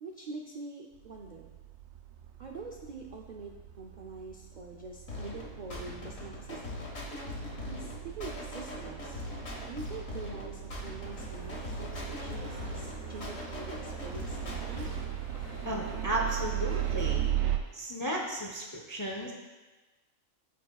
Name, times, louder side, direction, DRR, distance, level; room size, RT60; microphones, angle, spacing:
voice 1, 0.0-1.5 2.4-6.9 7.7-9.2 9.6-14.9, right 4 dB, 55° right, 0 dB, 0.5 m, -45 dB
sound 1, 1.0-17.6, right 12 dB, 85° right, 1.0 m, -38 dB
sound 2, 5.1-15.1, left 2 dB, 70° left, 1.8 m, -41 dB
sound 3, 11.1-17.3, left 3 dB, 55° left, 1.0 m, -50 dB
voice 2, 15.6-17.2 17.7-19.3, right 1 dB, 25° left, -1 dB, 0.4 m, -34 dB
12.5 x 4.7 x 2.3 m, 1.2 s
omnidirectional pair, 1.4 m